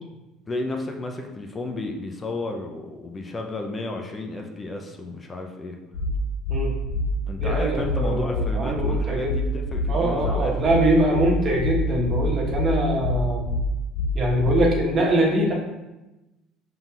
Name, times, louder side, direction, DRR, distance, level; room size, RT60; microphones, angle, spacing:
voice 1, 0.5-5.8 7.3-10.6, left 2 dB, 30° left, 3 dB, 0.5 m, -32 dB
sound 1, 5.9-14.9, left 1 dB, 80° left, 0.4 m, -26 dB
voice 2, 7.4-9.3 9.9-13.4 14.1-15.5, right 1 dB, 45° right, -2 dB, 1.2 m, -23 dB
5.3 x 3.8 x 2.4 m, 1.0 s
hypercardioid pair, 70°, 0 cm